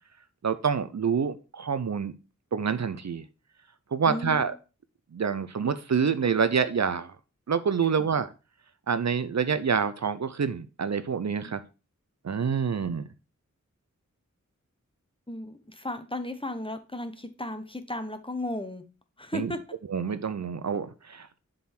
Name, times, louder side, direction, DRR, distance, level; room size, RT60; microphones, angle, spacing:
voice 1, 0.4-2.1 2.5-3.2 3.9-4.5 5.1-7.2 7.5-8.3 8.9-11.6 12.2-13.1 19.3-19.5 19.9-21.4, right 6 dB, 60° right, 13 dB, 0.5 m, -27 dB
voice 2, 4.1-4.5 8.0-8.1 11.4-11.5 15.3-18.8 19.2-19.6, left 1 dB, 15° left, 9 dB, 0.8 m, -35 dB
7.2 x 3.9 x 4.3 m, 0.32 s
wide cardioid pair, 55°, 31 cm